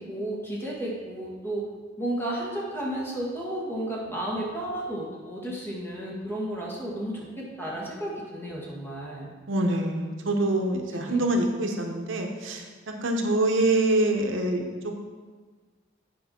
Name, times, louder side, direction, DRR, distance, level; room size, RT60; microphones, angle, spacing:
voice 1, 0.0-1.7 2.0-9.3 10.3-10.4 10.9-11.2, right 1 dB, 10° left, -5 dB, 1.8 m, -33 dB
voice 2, 9.5-12.6 13.0-14.7, right 2 dB, 70° right, 3 dB, 0.9 m, -25 dB
9.3 x 5.4 x 4.3 m, 1.4 s
head